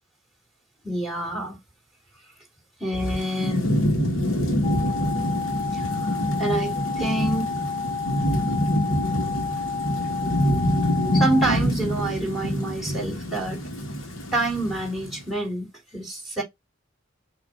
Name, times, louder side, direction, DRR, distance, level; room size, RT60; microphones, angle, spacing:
voice 1, 0.8-1.6 2.8-3.7 5.7-7.5 11.1-13.6 14.3-16.4, right 1 dB, ahead, 3.8 m, -27 dB
Thunderstorm / Rain, 3.0-15.2, equal, 80° left, 1.8 m, -26 dB
sound 1, 4.6-11.4, left 5 dB, 25° left, 1.5 m, -31 dB
6.3 x 3.2 x 4.9 m
head